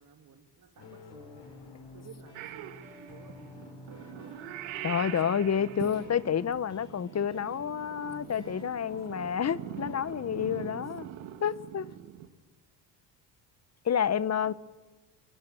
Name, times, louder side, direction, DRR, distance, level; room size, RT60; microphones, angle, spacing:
voice 1, 0.0-4.5 14.4-14.5, right 6 dB, 45° right, 2.6 m, -55 dB
sound 1, 0.8-10.9, left 2 dB, 65° left, 6.4 m, -50 dB
Purr / Meow, 2.3-12.3, right 12 dB, 80° right, 1.8 m, -43 dB
voice 2, 4.8-11.1 11.4-11.9 13.8-14.5, left 8 dB, 35° left, 1.0 m, -29 dB
23.5 x 23.0 x 9.0 m
supercardioid pair, 75°, 45 cm